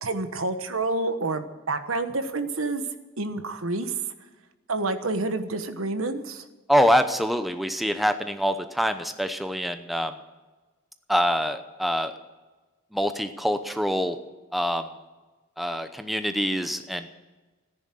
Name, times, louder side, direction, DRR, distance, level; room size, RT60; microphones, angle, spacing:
voice 1, 0.0-2.9 3.2-4.0 4.7-6.4, right 2 dB, 80° right, 9 dB, 1.3 m, -28 dB
voice 2, 6.7-10.1 11.1-12.1 12.9-14.2 14.5-14.9 15.6-17.1, equal, ahead, 8 dB, 0.7 m, -25 dB
14.5 x 10.5 x 7.6 m, 1.2 s
head